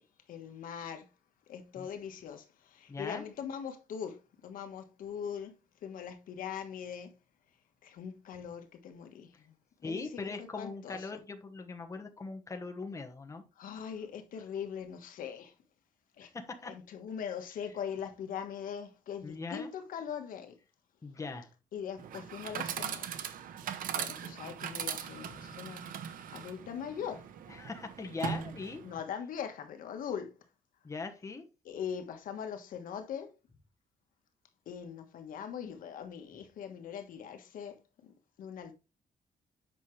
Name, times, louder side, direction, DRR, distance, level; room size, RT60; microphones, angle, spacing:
voice 1, 0.3-1.1 1.5-5.5 5.8-7.2 7.8-9.5 9.8-11.2 13.6-15.5 16.2-16.3 16.6-20.6 21.7-23.3 23.9-25.9 26.3-27.3 28.8-30.3 31.6-33.3 34.7-37.8 38.0-38.7, left 8 dB, 75° left, 1.4 m, -41 dB
voice 2, 2.9-3.3 9.8-13.4 16.2-16.7 19.2-19.7 21.0-21.5 25.0-25.5 27.5-28.8 30.8-31.4, left 4 dB, 20° left, 1.2 m, -41 dB
Chatter / Coin (dropping), 22.0-29.0, right 8 dB, 75° right, 0.9 m, -40 dB
8.3 x 5.8 x 3.2 m
cardioid pair, 135°, 14 cm